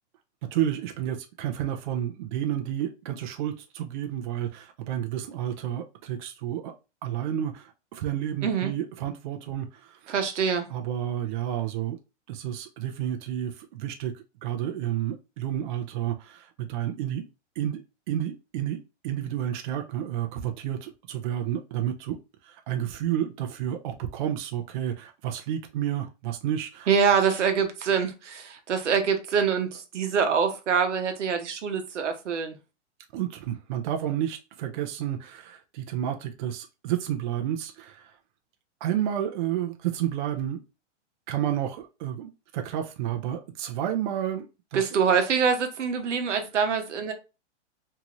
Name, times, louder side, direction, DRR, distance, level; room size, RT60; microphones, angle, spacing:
voice 1, 0.5-6.7 7.0-10.1 10.7-12.0 12.3-17.2 17.6-22.2 22.4-26.9 33.1-38.2 38.8-40.6 41.3-45.0, right 11 dB, 45° right, 0.5 m, -31 dB
voice 2, 8.4-8.7 10.1-10.7 26.9-32.5 44.7-47.1, right 6 dB, 85° right, 0.9 m, -25 dB
2.8 x 2.4 x 3.0 m
hypercardioid pair, 140°, 35 cm